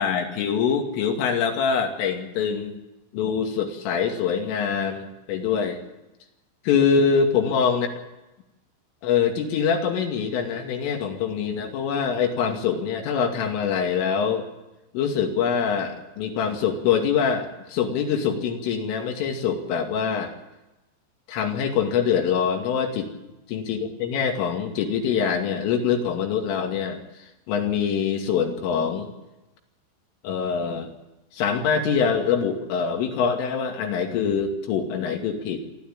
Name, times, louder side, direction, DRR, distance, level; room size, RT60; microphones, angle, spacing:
voice 1, 0.0-2.8 3.1-5.8 6.6-7.9 9.0-14.5 14.9-20.3 21.3-23.1 23.5-27.0 27.5-29.1 30.2-30.9 31.3-35.6, left 6 dB, 85° left, 3 dB, 5.0 m, -24 dB
27.0 x 12.5 x 8.9 m, 0.98 s
omnidirectional pair, 5.6 m